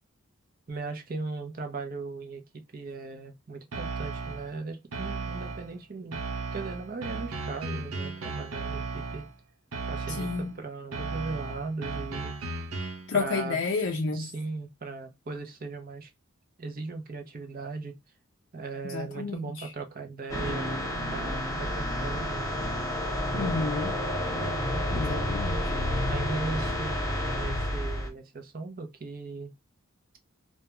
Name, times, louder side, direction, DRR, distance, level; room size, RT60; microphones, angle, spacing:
voice 1, 0.7-2.4 2.7-6.2 6.5-9.3 9.9-12.6 13.1-13.6 14.1-16.1 16.6-17.9 18.5-22.6 24.5-25.2 26.0-29.5, right 3 dB, 45° right, 0.6 m, -38 dB
sound 1, 3.7-4.5 4.9-5.7 6.1-9.3 9.7-10.5 10.9-13.1, right 3 dB, 85° right, 0.6 m, -35 dB
voice 2, 10.1-10.5 13.1-14.3 18.8-19.7 23.3-24.0 24.9-25.7, left 4 dB, 60° left, 0.4 m, -31 dB
sound 2, 20.3-28.1, left 1 dB, 15° left, 0.7 m, -30 dB
2.2 x 2.2 x 2.8 m
head